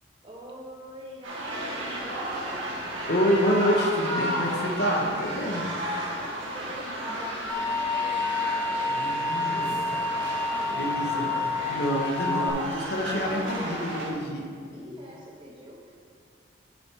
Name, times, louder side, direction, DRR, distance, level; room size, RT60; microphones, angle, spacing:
voice 1, 0.2-2.5 5.5-5.7 6.0-11.5 14.7-15.9, equal, 25° right, -3 dB, 0.7 m, -45 dB
sound 1, 1.2-14.1, right 1 dB, 85° right, 1.8 m, -33 dB
voice 2, 3.1-5.6 8.9-9.7 10.7-11.3 11.7-14.4, equal, 60° left, 0 dB, 1.0 m, -27 dB
sound 2, 7.5-12.5, left 3 dB, 10° left, 0.8 m, -29 dB
9.1 x 7.1 x 3.4 m, 2.2 s
head